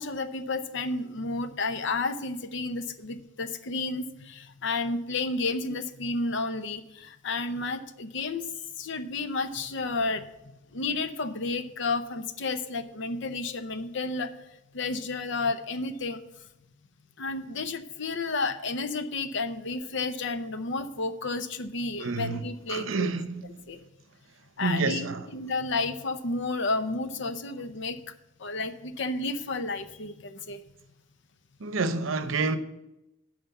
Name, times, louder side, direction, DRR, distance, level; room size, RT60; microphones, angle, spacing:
voice 1, 0.0-8.5 8.8-10.3 10.7-14.3 14.7-16.2 17.2-23.1 23.7-23.8 24.6-25.1 25.3-28.0 28.4-30.6, left 3 dB, 65° left, 0.7 m, -31 dB
voice 2, 22.0-22.4 22.7-23.6 24.6-25.3 31.6-32.6, right 3 dB, 90° right, 0.7 m, -29 dB
9.1 x 5.1 x 7.0 m
head